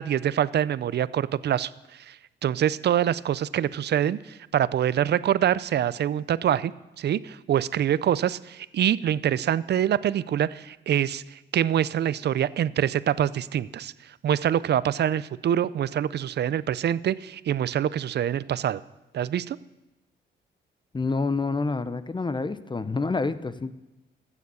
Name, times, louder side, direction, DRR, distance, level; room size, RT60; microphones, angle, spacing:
voice 1, 0.0-1.7 2.1-2.2 2.4-6.7 7.0-13.9 14.2-18.8 19.1-19.6, right 10 dB, 55° right, 18 dB, 0.5 m, -25 dB
voice 2, 20.9-23.7, left 3 dB, 20° left, 14 dB, 0.7 m, -28 dB
14.5 x 7.2 x 6.9 m, 1.0 s
cardioid pair, 70°, 21 cm